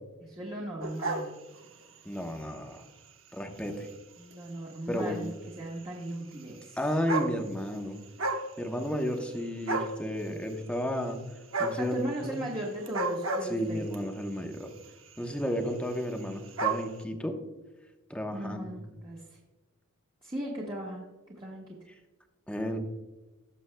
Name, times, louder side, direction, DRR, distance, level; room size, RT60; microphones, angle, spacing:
voice 1, 0.2-1.3 4.2-5.3 5.6-7.0 11.8-13.8 18.3-19.4 20.2-21.0 21.4-21.8, right 1 dB, 20° right, -4 dB, 1.3 m, -37 dB
sound 1, 0.8-2.0 2.6-2.8 3.6-3.7 3.9-4.0 4.3-4.4 5.6-5.7 6.6-6.7 6.9-7.7 8.0-8.5 8.8-9.4 9.7-10.0 11.5-11.9 12.8-14.0 14.8-15.1 15.4-15.5 15.7-15.8 16.0-16.9, right 3 dB, 60° right, 1.0 m, -31 dB
voice 2, 2.0-2.8 3.3-3.9 4.9-5.2 6.8-8.0 8.6-11.2 11.6-12.4 13.5-14.7 15.2-17.4 18.1-18.7 22.5-22.8, equal, 5° left, 4 dB, 0.9 m, -32 dB
17.5 x 7.0 x 2.2 m, 1.1 s
head